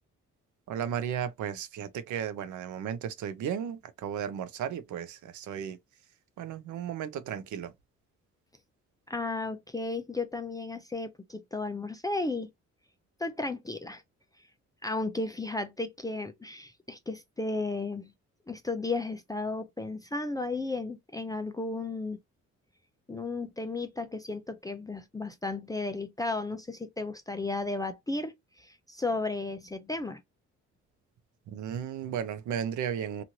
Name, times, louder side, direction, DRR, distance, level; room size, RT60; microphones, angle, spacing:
voice 1, 0.7-5.8 6.4-7.7 31.5-33.2, right 9 dB, 75° right, 0.7 m, -34 dB
voice 2, 9.1-12.5 13.2-14.0 14.8-18.1 18.5-22.2 23.1-30.2, left 3 dB, 10° left, 0.4 m, -34 dB
3.0 x 2.5 x 2.7 m
cardioid pair, 90°, 30 cm